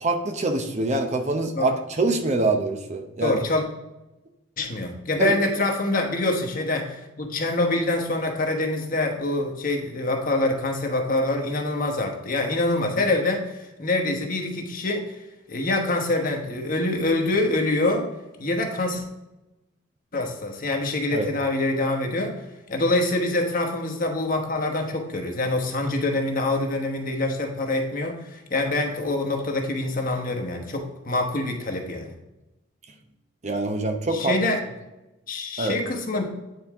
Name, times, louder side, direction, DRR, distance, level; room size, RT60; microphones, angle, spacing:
voice 1, 0.0-3.4 5.2-5.3 21.1-21.3 33.4-34.4 35.6-35.8, right 2 dB, 35° right, 5 dB, 0.7 m, -24 dB
voice 2, 3.2-3.6 4.6-15.0 15.5-18.1 18.4-19.0 20.1-22.3 22.7-32.1 34.1-34.6 35.3-36.3, left 2 dB, 45° left, 3 dB, 1.2 m, -25 dB
9.3 x 4.4 x 3.5 m, 0.97 s
head